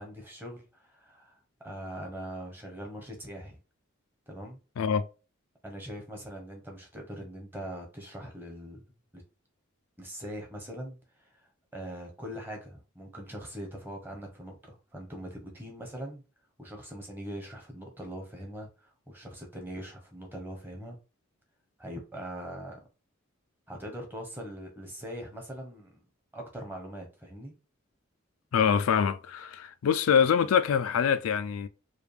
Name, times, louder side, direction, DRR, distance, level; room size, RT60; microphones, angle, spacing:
voice 1, 0.0-3.6 4.3-4.6 5.6-8.8 9.1-9.2 10.0-11.0 11.3-11.4 11.7-16.2 16.6-21.0 21.8-22.8 23.7-26.0 26.3-27.5, equal, 10° right, 1.0 m, -42 dB
voice 2, 4.8-5.1 28.5-31.7, left 7 dB, 85° left, 0.4 m, -25 dB
4.9 x 2.3 x 3.3 m
head